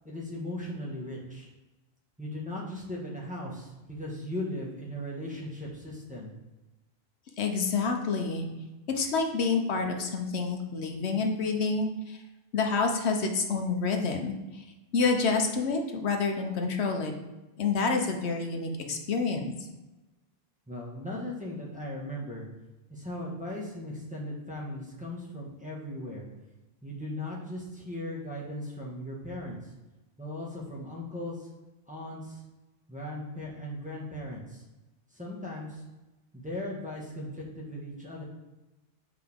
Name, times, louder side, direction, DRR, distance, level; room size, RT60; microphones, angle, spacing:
voice 1, 0.0-1.5 2.2-6.3 20.7-22.5 22.9-26.3 26.8-29.7 30.2-31.5 31.9-32.4 32.9-34.6 35.1-35.8 36.3-38.2, left 1 dB, 5° right, -5 dB, 1.4 m, -38 dB
voice 2, 7.4-8.4 8.9-12.2 12.5-14.6 14.9-17.1 17.6-19.5, left 4 dB, 85° left, 3 dB, 1.1 m, -28 dB
7.7 x 4.7 x 3.6 m, 1.1 s
omnidirectional pair, 1.1 m